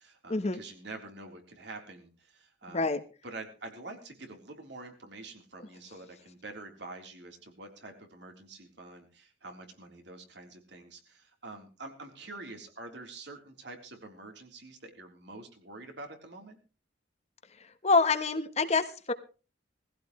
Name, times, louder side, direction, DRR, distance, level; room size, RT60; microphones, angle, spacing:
voice 1, 0.0-2.8 3.2-16.6, right 2 dB, 65° right, 3 dB, 3.7 m, -46 dB
voice 2, 2.7-3.0 17.8-19.1, left 3 dB, 35° left, 9 dB, 1.2 m, -26 dB
19.5 x 15.5 x 3.2 m, 0.35 s
head